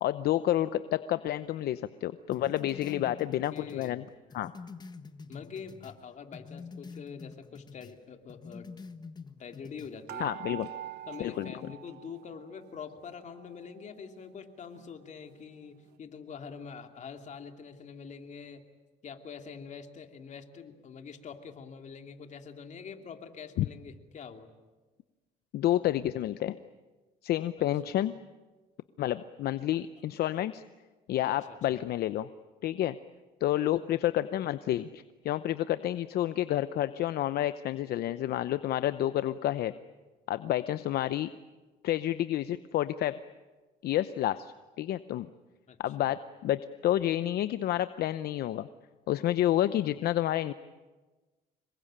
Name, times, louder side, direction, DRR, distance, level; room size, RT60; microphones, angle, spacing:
voice 1, 0.0-4.0 4.3-4.5 10.2-10.7 11.2-11.5 23.6-23.7 25.5-26.6 27.2-28.1 29.0-30.6 31.1-32.3 32.6-33.0 33.4-39.7 40.3-41.3 41.8-43.2 43.8-45.3 45.8-48.7 49.1-50.5, left 13 dB, 65° left, 13 dB, 0.8 m, -29 dB
sound 1, 2.3-6.0 6.3-8.0 8.3-9.9, left 4 dB, 25° left, 1.4 m, -47 dB
voice 2, 3.5-4.0 5.3-8.8 9.4-10.3 11.1-18.6 19.0-24.5 27.6-27.7 31.2-31.6 45.7-46.1, left 6 dB, 45° left, 5 dB, 2.8 m, -45 dB
sound 2, 10.1-12.6 12.9-13.9 14.4-14.5 14.7-14.9, right 12 dB, 80° right, 1.3 m, -44 dB
26.5 x 22.5 x 8.9 m, 1.2 s
cardioid pair, 110°, 17 cm